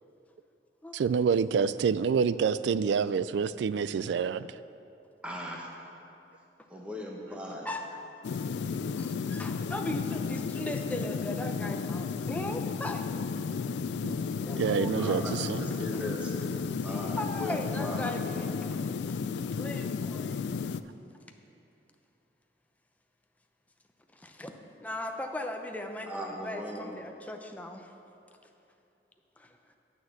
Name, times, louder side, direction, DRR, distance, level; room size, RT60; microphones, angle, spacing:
voice 1, 0.9-4.5 14.0-14.1 14.6-15.7, right 6 dB, 80° right, 15 dB, 0.3 m, -27 dB
voice 2, 5.2-5.7 6.7-7.7 15.0-18.6 26.1-26.9, equal, 5° right, -2 dB, 1.3 m, -39 dB
voice 3, 7.6-8.2 8.6-13.0 14.4-14.9 15.9-16.0 16.8-19.2 19.5-20.6 24.1-24.5 24.8-27.9 29.4-29.6, left 1 dB, 10° left, 4 dB, 0.6 m, -38 dB
sound 1, 8.2-20.8, left 5 dB, 75° left, 0.3 m, -33 dB
9.2 x 6.4 x 7.2 m, 2.7 s
head